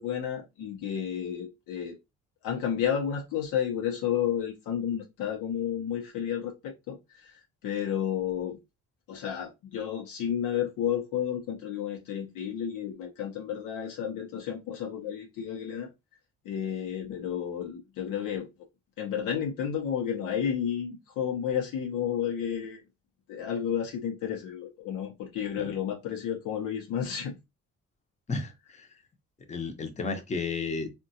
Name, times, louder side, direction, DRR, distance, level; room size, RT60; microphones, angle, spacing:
voice 1, 0.0-2.0 2.4-8.6 9.1-15.9 16.4-18.5 19.0-22.8 23.3-27.4, left 9 dB, 90° left, 0.7 m, -31 dB
voice 2, 28.3-28.9 29.5-30.9, left 4 dB, 25° left, 0.7 m, -33 dB
3.5 x 2.2 x 2.6 m
cardioid pair, 90°, 30 cm